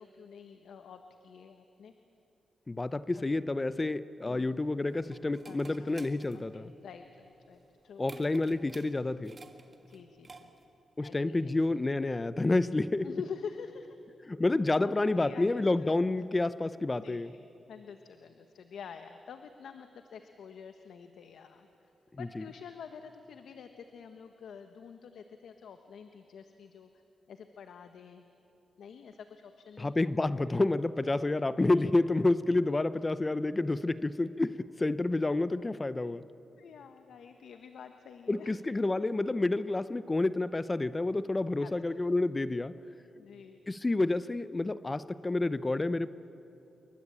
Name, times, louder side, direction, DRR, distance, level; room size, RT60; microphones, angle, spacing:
voice 1, 0.0-1.9 3.2-3.3 4.2-4.5 5.4-6.0 6.3-8.1 8.5-8.6 9.9-10.5 11.0-11.5 13.0-13.9 14.8-15.6 17.0-17.4 17.7-21.7 22.2-26.9 27.3-28.2 28.8-29.9 36.6-38.6 41.6-41.7 43.1-43.6, left 6 dB, 85° left, 1.2 m, -47 dB
voice 2, 2.7-6.7 8.0-9.4 11.0-13.1 14.3-17.3 22.2-22.4 29.8-36.2 38.3-42.8 43.7-46.1, left 2 dB, 20° left, 0.7 m, -29 dB
sound 1, 4.4-10.8, right 3 dB, 30° right, 1.8 m, -54 dB
28.5 x 23.5 x 8.8 m
wide cardioid pair, 120°, 0 cm